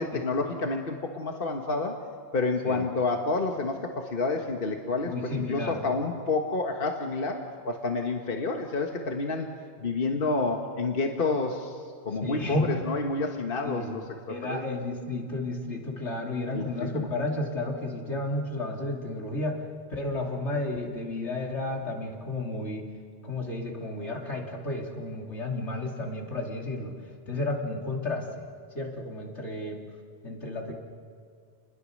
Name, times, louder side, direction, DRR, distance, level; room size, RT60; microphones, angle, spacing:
voice 1, 0.0-2.0 2.3-9.5 9.8-11.8 12.0-14.0 14.3-14.6 16.5-17.1, left 3 dB, 55° left, 3 dB, 1.6 m, -29 dB
voice 2, 5.0-5.8 12.2-12.7 13.6-14.0 14.3-19.6 19.9-22.9 23.2-27.0 27.3-28.3 28.7-29.8 30.2-30.7, left 2 dB, 80° left, 0 dB, 3.2 m, -32 dB
30.0 x 21.0 x 6.5 m, 2.3 s
omnidirectional pair, 1.2 m